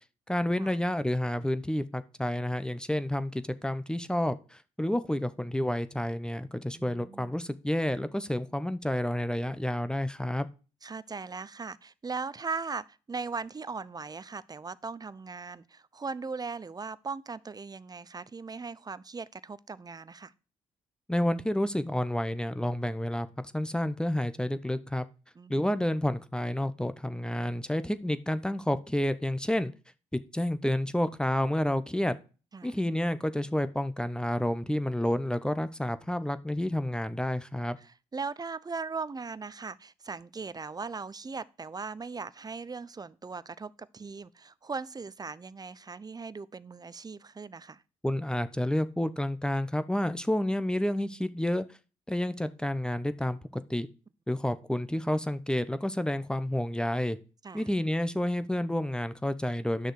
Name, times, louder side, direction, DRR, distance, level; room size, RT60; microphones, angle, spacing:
voice 1, 0.3-10.5 21.1-23.3 23.5-25.1 25.5-29.7 30.3-32.2 32.6-37.8 48.0-51.6 52.1-53.9 54.3-57.2 57.5-59.9, left 1 dB, 5° left, 0.9 m, -30 dB
voice 2, 6.7-7.3 10.8-20.3 25.4-25.9 32.5-32.7 37.8-47.8 57.4-57.7, right 4 dB, 30° right, 0.6 m, -39 dB
10.0 x 6.4 x 4.8 m
hypercardioid pair, 50°, 14 cm